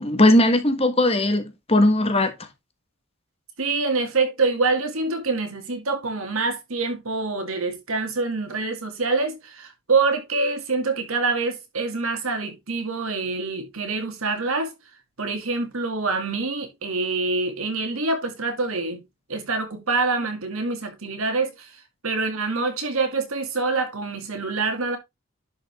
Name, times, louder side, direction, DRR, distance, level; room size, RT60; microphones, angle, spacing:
voice 1, 0.0-2.3, left 1 dB, 25° left, 1.4 m, -18 dB
voice 2, 3.6-14.7 15.2-19.0 19.3-21.8 22.0-25.0, right 3 dB, 75° right, 2.5 m, -25 dB
11.0 x 5.2 x 3.6 m
head